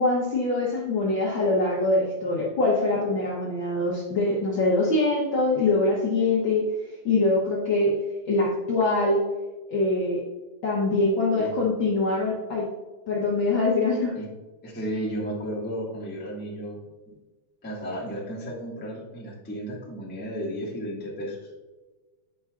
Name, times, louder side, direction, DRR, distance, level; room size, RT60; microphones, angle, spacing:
voice 1, 0.0-6.6 7.0-7.9 8.2-9.2 9.7-10.2 10.6-12.6 13.1-14.1, left 2 dB, 65° left, -4 dB, 1.2 m, -23 dB
voice 2, 14.6-16.8 17.6-21.5, equal, 15° left, -5 dB, 0.4 m, -33 dB
8.6 x 5.3 x 2.4 m, 1.2 s
omnidirectional pair, 3.3 m